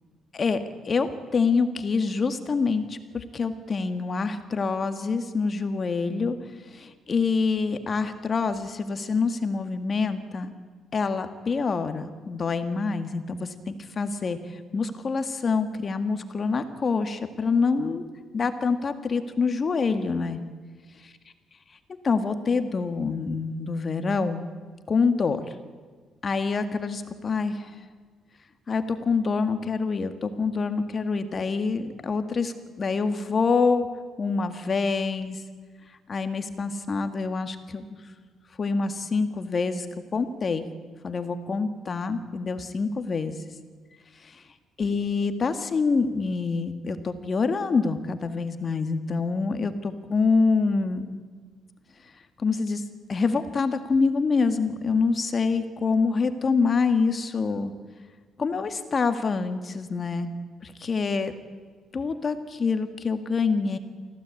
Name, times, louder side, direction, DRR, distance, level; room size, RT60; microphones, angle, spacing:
voice 1, 0.3-6.4 6.7-10.5 10.9-14.4 14.7-18.1 18.3-20.4 22.0-24.5 24.9-25.4 26.2-27.7 28.7-33.9 34.2-35.4 36.1-37.9 38.6-39.9 40.1-40.6 41.0-43.4 44.2-44.4 44.8-51.1 52.4-52.8 53.1-57.7 58.4-60.3 60.6-61.3 61.9-63.8, left 4 dB, 40° left, 8 dB, 1.9 m, -26 dB
25.0 x 16.0 x 8.6 m, 1.5 s
cardioid pair, 90°, 0 cm